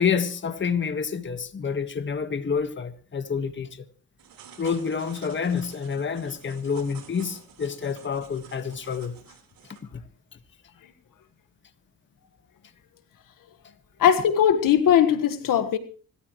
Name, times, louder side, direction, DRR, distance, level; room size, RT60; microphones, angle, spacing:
voice 1, 0.0-3.8 4.6-9.1 9.9-10.0, left 6 dB, 35° left, 1.6 m, -28 dB
sound 1, 4.2-9.8, right 7 dB, 80° right, 4.2 m, -49 dB
voice 2, 14.0-15.8, left 9 dB, 65° left, 1.6 m, -19 dB
26.0 x 14.0 x 3.2 m
cardioid pair, 110°, 35 cm